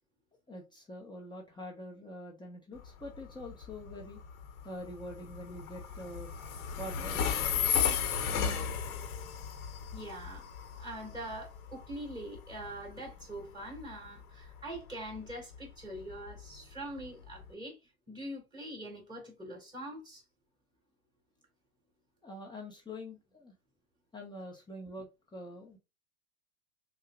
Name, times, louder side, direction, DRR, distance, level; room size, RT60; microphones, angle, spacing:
voice 1, 0.5-4.2 4.6-6.3 6.7-7.2 22.2-23.5 24.1-25.8, left 1 dB, 10° left, 1.0 m, -45 dB
Train, 2.8-17.5, left 7 dB, 75° left, 1.2 m, -36 dB
voice 2, 9.9-10.5 10.8-17.8 18.1-20.2, right 1 dB, 10° right, 2.5 m, -43 dB
6.4 x 2.4 x 2.4 m
hypercardioid pair, 100°, 43 cm